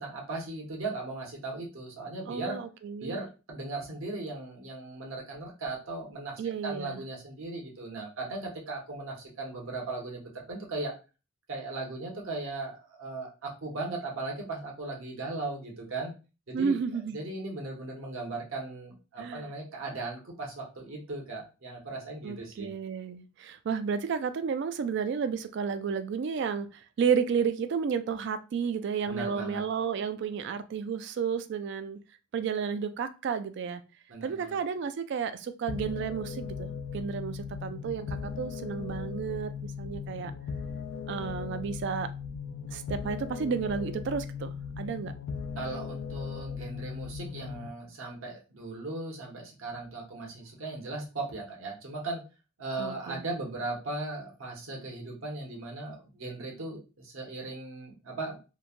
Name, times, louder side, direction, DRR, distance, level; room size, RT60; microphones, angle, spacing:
voice 1, 0.0-2.6 3.0-6.3 6.6-10.9 11.5-16.1 16.5-16.8 17.1-22.7 29.0-29.6 34.1-34.6 45.6-52.2 52.6-58.4, right 2 dB, 75° right, -1 dB, 1.0 m, -37 dB
voice 2, 2.3-3.2 6.4-7.0 16.5-17.2 19.2-19.5 22.2-32.0 32.3-33.8 34.2-40.3 41.1-42.1 42.7-45.1 52.8-53.2, right 6 dB, 55° right, 11 dB, 0.3 m, -32 dB
sound 1, 35.7-47.7, left 6 dB, 70° left, 0.3 m, -38 dB
3.1 x 2.2 x 2.4 m, 0.32 s
head